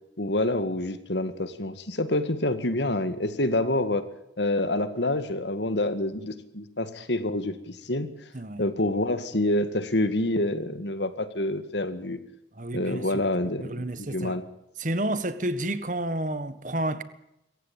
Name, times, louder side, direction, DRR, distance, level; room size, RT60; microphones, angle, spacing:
voice 1, 0.2-4.0 4.4-8.1 8.6-12.2 12.7-14.4, left 1 dB, 75° left, 2.0 m, -27 dB
voice 2, 12.6-13.2 13.6-14.4 14.8-17.0, right 1 dB, 45° right, 1.5 m, -30 dB
25.5 x 15.5 x 8.9 m
head